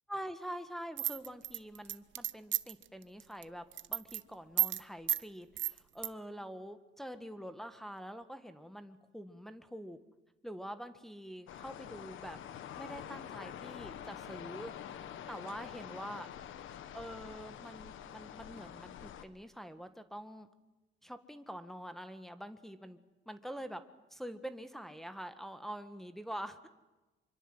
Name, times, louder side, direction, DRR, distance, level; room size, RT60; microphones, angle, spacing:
voice 1, 0.1-3.6 3.9-10.0 10.4-12.4 12.7-14.7 15.3-16.3 16.9-20.5 21.0-23.0 23.2-23.8 24.1-26.7, equal, ahead, 8 dB, 1.6 m, -45 dB
sound 1, 1.0-2.8 3.2-3.4 3.7-4.2 4.6-4.8 5.1-5.2 5.6-6.1, right 13 dB, 75° right, 0.9 m, -32 dB
sound 2, 11.5-19.3, left 10 dB, 80° left, 1.6 m, -47 dB
25.5 x 24.0 x 8.0 m, 1.1 s
cardioid pair, 90°, 20 cm